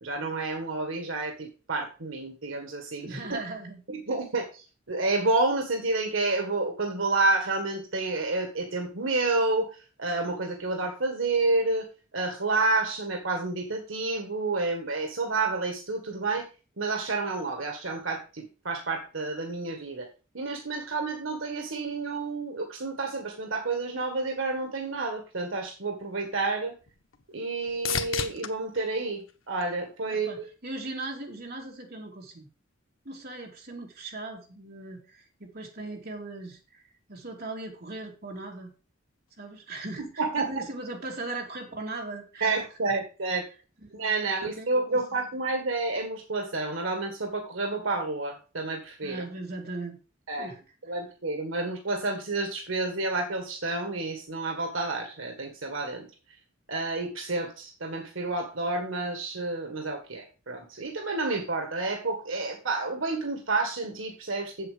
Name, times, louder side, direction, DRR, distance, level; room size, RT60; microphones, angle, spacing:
voice 1, 0.0-3.4 3.9-9.7 10.0-11.9 12.1-16.4 16.8-20.1 20.3-26.7 27.3-30.4 40.2-40.5 42.4-43.4 43.9-49.2 50.3-50.5 50.9-56.1 56.7-64.7, right 3 dB, 75° right, 4 dB, 1.7 m, -29 dB
voice 2, 3.0-3.8 30.1-32.5 33.0-36.8 37.1-38.7 39.4-42.6 43.8-44.0 44.6-45.2 49.0-50.0 50.4-50.6, right 2 dB, 50° right, 0 dB, 2.7 m, -39 dB
sound 1, 26.1-30.3 30.8-31.5 39.3-39.4, left 7 dB, 85° left, 1.1 m, -37 dB
7.8 x 7.5 x 5.0 m, 0.34 s
head